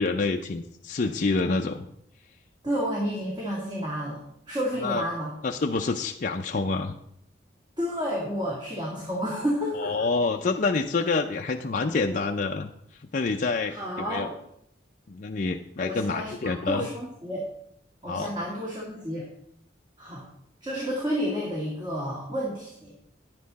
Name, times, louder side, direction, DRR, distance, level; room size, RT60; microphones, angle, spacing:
voice 1, 0.0-1.9 4.8-5.0 5.4-6.9 9.8-12.7 13.1-14.3 15.1-16.9 18.1-18.3, left 3 dB, 45° left, 2 dB, 0.5 m, -27 dB
voice 2, 2.6-4.2 4.5-5.3 7.8-10.1 13.7-14.3 15.8-17.5 18.0-19.3 20.0-20.3 20.6-22.9, equal, 25° right, -4 dB, 2.2 m, -30 dB
10.5 x 8.7 x 4.1 m, 0.71 s
head